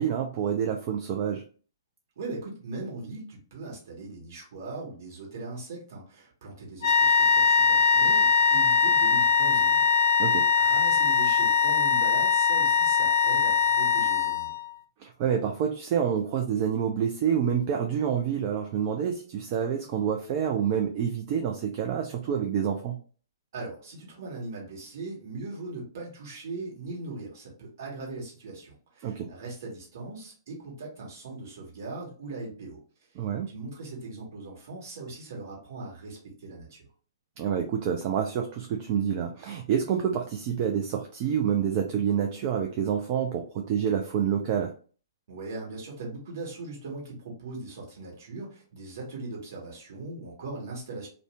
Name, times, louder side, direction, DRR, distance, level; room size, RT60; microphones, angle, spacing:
voice 1, 0.0-1.4 10.2-10.5 15.0-23.0 29.0-29.3 33.2-33.5 37.4-44.7, right 8 dB, 35° right, 3 dB, 0.3 m, -27 dB
voice 2, 2.2-9.9 10.6-14.5 23.5-32.8 33.5-36.8 45.3-51.1, right 3 dB, 50° right, -3 dB, 1.2 m, -39 dB
sound 1, 6.8-14.7, left 5 dB, 55° left, 0.4 m, -22 dB
2.5 x 2.0 x 3.3 m, 0.41 s
figure-of-eight pair, 120°, 2 cm